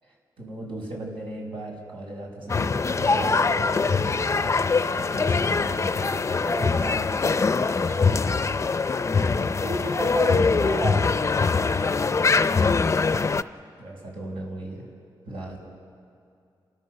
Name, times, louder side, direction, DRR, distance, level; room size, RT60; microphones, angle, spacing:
voice 1, 0.4-6.1 13.8-14.9 15.3-15.6, right 1 dB, 85° right, -2 dB, 5.6 m, -37 dB
sound 1, 2.5-13.4, left 4 dB, 35° left, 0.5 m, -23 dB
voice 2, 6.3-8.6 9.3-11.4, right 2 dB, 45° right, 2 dB, 3.2 m, -33 dB
30.0 x 14.0 x 6.7 m, 2.4 s
cardioid pair, 85°, 9 cm